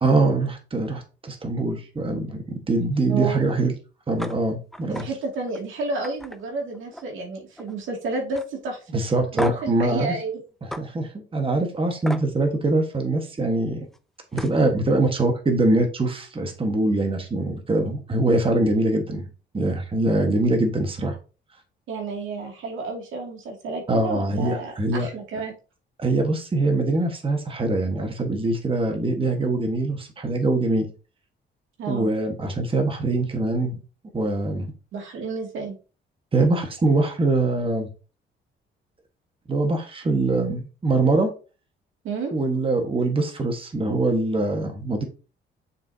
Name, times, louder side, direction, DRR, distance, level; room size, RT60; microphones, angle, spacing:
voice 1, 0.0-3.7 4.1-5.1 8.9-10.1 10.6-13.9 14.3-19.2 19.5-21.2 23.9-25.1 26.0-30.9 31.9-33.8 34.1-34.7 36.3-37.9 39.5-41.3 42.3-45.0, right 2 dB, 25° right, 4 dB, 1.5 m, -23 dB
voice 2, 3.1-3.6 4.8-9.0 9.3-10.4 21.9-25.5 31.8-32.1 34.9-35.7 42.0-42.3, right 3 dB, 80° right, 1 dB, 2.4 m, -31 dB
sound 1, 4.2-4.3 4.7-5.1 5.5-5.6 6.0-7.2 7.5-7.9 8.3-8.5 9.4-9.7 10.7-10.8 12.0-12.3 13.9-14.0 14.3-14.6, equal, ahead, 0.6 m, -34 dB
6.9 x 5.7 x 2.8 m, 0.34 s
cardioid pair, 90°, 20 cm